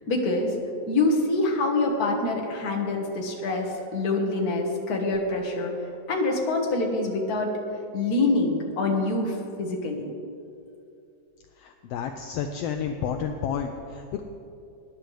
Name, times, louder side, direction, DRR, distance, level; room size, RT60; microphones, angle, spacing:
voice 1, 0.1-0.5 0.9-5.7 6.1-7.5 7.9-10.1, left 2 dB, 40° left, 0 dB, 1.5 m, -25 dB
voice 2, 11.6-14.2, left 7 dB, 80° left, 5 dB, 1.4 m, -31 dB
21.0 x 10.5 x 3.3 m, 2.6 s
omnidirectional pair, 3.4 m